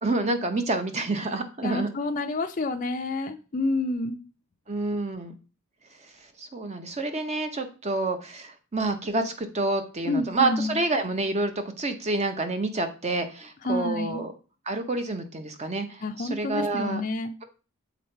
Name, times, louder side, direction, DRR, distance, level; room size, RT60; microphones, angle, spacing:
voice 1, 0.0-1.9 4.7-5.3 6.4-14.3 14.7-17.0, right 2 dB, 30° right, 7 dB, 0.8 m, -28 dB
voice 2, 1.6-4.2 10.0-10.8 13.6-14.2 16.0-17.4, left 2 dB, 35° left, 4 dB, 0.5 m, -29 dB
7.0 x 3.9 x 4.5 m, 0.34 s
head